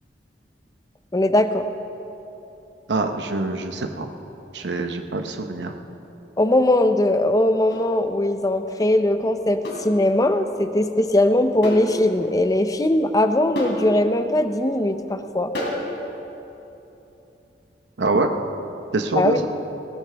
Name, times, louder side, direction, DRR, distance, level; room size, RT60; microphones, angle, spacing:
voice 1, 1.1-1.6 6.4-15.5 19.2-19.4, left 1 dB, 20° left, 8 dB, 0.6 m, -20 dB
voice 2, 2.9-4.1 4.5-5.7 18.0-18.3 18.9-19.4, right 3 dB, 90° right, 5 dB, 0.9 m, -24 dB
sound 1, 7.7-7.9 9.6-9.9 11.6-11.9 12.2-12.3 13.5-13.9 15.5-15.9, left 1 dB, 80° left, 3.4 m, -29 dB
18.5 x 18.5 x 3.4 m, 3.0 s
head